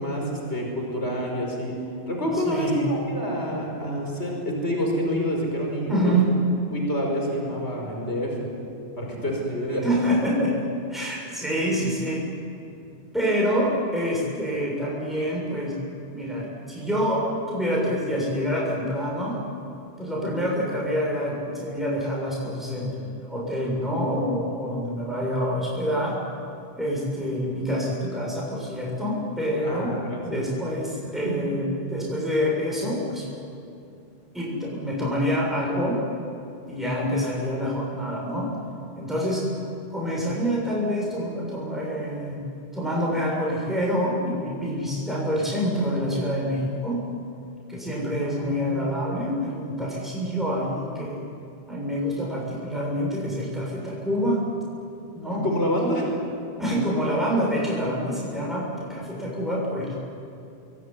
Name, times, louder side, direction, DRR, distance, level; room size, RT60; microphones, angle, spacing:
voice 1, 0.0-1.8 2.1-6.1 6.7-8.5 9.0-9.9 29.6-30.5 31.2-31.3 48.2-48.7 55.4-56.1, equal, 85° left, 0 dB, 5.7 m, -27 dB
voice 2, 2.3-2.8 5.9-6.3 9.8-12.2 13.1-15.8 16.1-19.4 20.0-26.2 26.8-30.0 30.2-33.2 34.3-36.0 36.7-38.5 39.0-39.5 39.9-42.4 42.7-47.0 47.7-51.2 51.7-54.4 55.1-55.5 55.8-55.9 56.6-60.0, equal, ahead, -4 dB, 6.7 m, -26 dB
27.5 x 21.5 x 9.8 m, 2.6 s
omnidirectional pair, 1.1 m